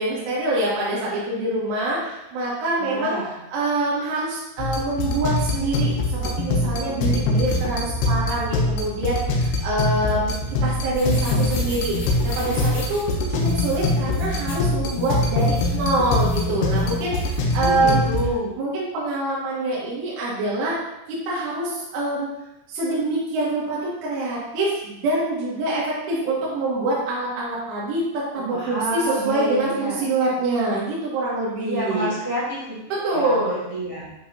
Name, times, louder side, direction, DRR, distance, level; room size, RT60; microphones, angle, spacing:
voice 1, 0.0-3.2 3.5-10.3 10.6-12.0 12.2-18.0 18.6-20.8 21.1-22.3 22.7-32.1 32.9-33.6, right 2 dB, 80° right, -7 dB, 4.1 m, -25 dB
voice 2, 2.8-3.3 17.6-18.5 28.5-30.0 31.6-32.6 33.0-34.1, right 1 dB, 15° right, -9 dB, 0.8 m, -28 dB
sound 1, 4.6-18.3, left 2 dB, 75° left, 2.5 m, -23 dB
sound 2, 10.5-17.4, left 1 dB, 50° left, 2.5 m, -39 dB
10.0 x 5.5 x 2.8 m, 0.90 s
omnidirectional pair, 5.6 m